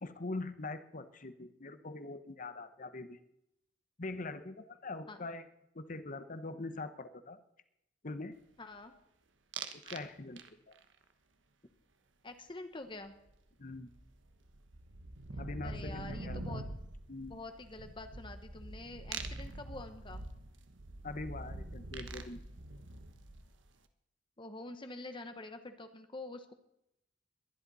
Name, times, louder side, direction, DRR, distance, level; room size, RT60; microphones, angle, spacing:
voice 1, 0.0-3.2 4.0-5.5 5.7-7.4 8.0-8.4 9.7-10.4 13.6-13.9 15.4-16.6 17.1-17.4 21.0-22.5, left 2 dB, 45° left, 11 dB, 1.0 m, -43 dB
voice 2, 8.6-8.9 12.2-13.2 15.6-16.6 17.3-20.2 24.4-26.5, left 2 dB, 25° left, 7 dB, 1.2 m, -46 dB
sound 1, 9.5-10.1 10.4-10.8 13.3-13.4 13.6-23.7, right 2 dB, 80° right, 1.2 m, -44 dB
21.5 x 11.0 x 4.2 m, 0.82 s
head